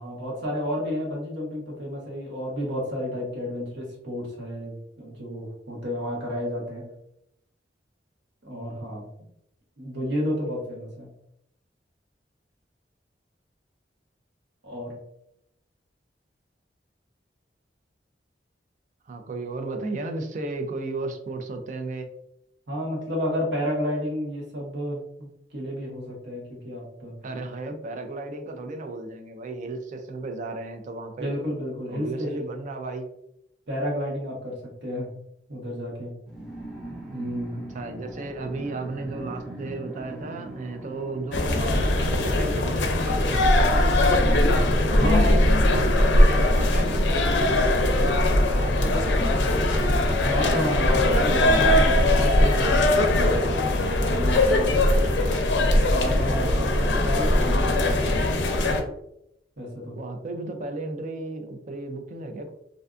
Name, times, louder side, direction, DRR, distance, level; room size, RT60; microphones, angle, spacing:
voice 1, 0.0-6.9 8.4-9.1 9.8-11.1 14.6-15.0 22.7-27.1 31.2-32.3 33.7-35.1 35.5-36.1 37.1-37.5 44.9-45.3 50.2-53.7 54.0-55.1 55.9-58.4 59.6-60.0, equal, 80° right, -3 dB, 1.0 m, -31 dB
voice 2, 19.1-22.1 27.2-31.3 31.9-33.1 37.7-44.1 44.9-47.9 48.5-49.4 57.6-57.7 59.9-62.5, right 3 dB, 45° right, 6 dB, 0.4 m, -34 dB
sound 1, 36.3-44.4, right 1 dB, 5° right, 0.6 m, -42 dB
sound 2, 41.3-58.8, left 1 dB, 85° left, 0.4 m, -20 dB
2.5 x 2.2 x 2.4 m, 0.78 s
head